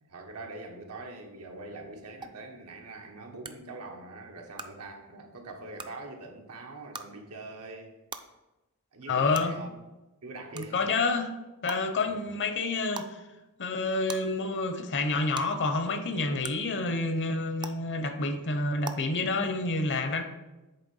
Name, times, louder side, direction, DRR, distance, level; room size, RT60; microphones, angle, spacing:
voice 1, 0.0-7.9 8.9-9.7 10.2-10.8 12.0-12.2, right 2 dB, 90° right, 2 dB, 1.2 m, -43 dB
sound 1, 2.2-2.3 3.4-3.5 4.6-4.7 5.8-5.9 6.9-7.1 8.1-8.2 9.3-9.4 10.6-10.7 11.7-11.8 12.9-13.1 14.1-14.2 15.3-15.4 16.4-16.5 17.6-17.7 18.8-18.9, right 5 dB, 20° right, 0.4 m, -38 dB
voice 2, 9.1-9.6 10.5-11.3 11.6-13.2 13.6-20.2, left 3 dB, 55° left, 7 dB, 0.8 m, -28 dB
8.4 x 3.4 x 5.5 m, 1.0 s
head